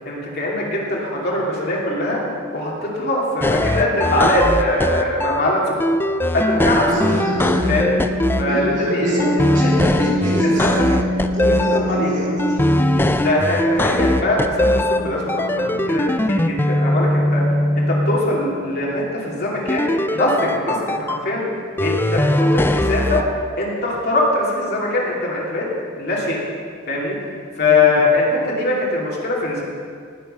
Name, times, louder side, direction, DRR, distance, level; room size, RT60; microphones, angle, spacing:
voice 1, 0.0-2.2 2.5-5.8 6.3-6.9 7.7-8.0 8.4-9.3 9.6-10.3 10.6-10.9 11.6-12.1 12.9-17.4 17.7-21.4 21.8-23.2 23.6-25.7 26.0-26.4 26.9-27.2 27.6-29.6, left 2 dB, 50° left, -4 dB, 2.8 m, -22 dB
sound 1, 3.4-5.4 5.8-8.4 9.2-11.8 12.4-15.0 15.3-18.2 19.7-21.2 21.8-23.2, left 1 dB, 10° left, 0.4 m, -20 dB
voice 2, 6.9-7.7 8.5-11.0 11.3-12.6 27.7-28.0, equal, 40° right, -6 dB, 4.0 m, -26 dB
Piano, 6.9-22.3, left 1 dB, 60° right, 1.2 m, -29 dB
19.0 x 8.1 x 5.6 m, 2.1 s
head